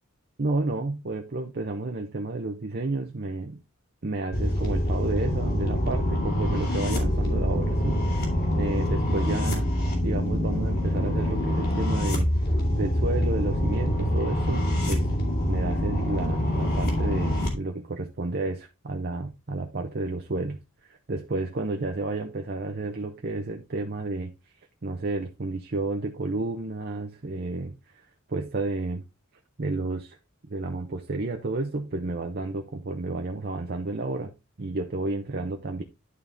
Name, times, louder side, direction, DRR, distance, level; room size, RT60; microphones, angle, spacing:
voice 1, 0.4-3.6 4.0-8.3 8.5-9.7 10.0-12.3 12.8-15.1 15.5-24.3 24.8-28.0 28.3-29.0 29.6-30.2 30.5-34.3 34.6-35.8, right 2 dB, 45° right, 0.7 m, -31 dB
sound 1, 4.3-17.5, left 1 dB, 45° left, 2.5 m, -25 dB
11.0 x 4.2 x 3.5 m
head